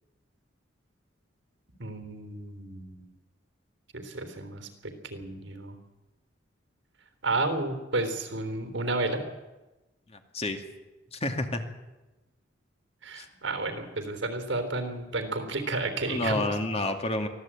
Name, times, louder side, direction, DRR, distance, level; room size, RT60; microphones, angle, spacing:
voice 1, 1.8-3.1 3.9-5.7 7.2-9.2 13.0-16.5, right 2 dB, 70° right, 8 dB, 3.4 m, -32 dB
voice 2, 11.1-11.6 13.2-13.3 16.1-17.3, left 2 dB, 35° left, 6 dB, 2.3 m, -29 dB
24.0 x 15.5 x 8.7 m, 1.1 s
head